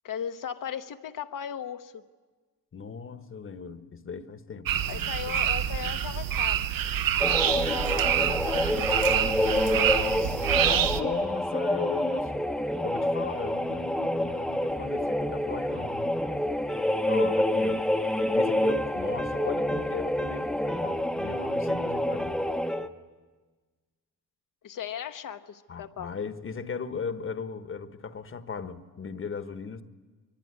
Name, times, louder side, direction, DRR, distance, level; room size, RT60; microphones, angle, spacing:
voice 1, 0.0-2.0 4.9-6.6 7.4-10.9 24.6-26.1, left 9 dB, 65° left, 7 dB, 1.0 m, -38 dB
voice 2, 2.7-5.5 5.8-6.1 7.5-7.9 10.9-16.1 17.1-17.8 18.3-22.5 25.7-29.8, left 5 dB, 35° left, 11 dB, 1.2 m, -37 dB
sound 1, 4.7-11.0, right 10 dB, 70° right, 1.0 m, -26 dB
sound 2, 7.2-22.9, left 1 dB, ahead, 0.8 m, -28 dB
24.0 x 23.5 x 9.6 m, 1.3 s
wide cardioid pair, 160°, 35 cm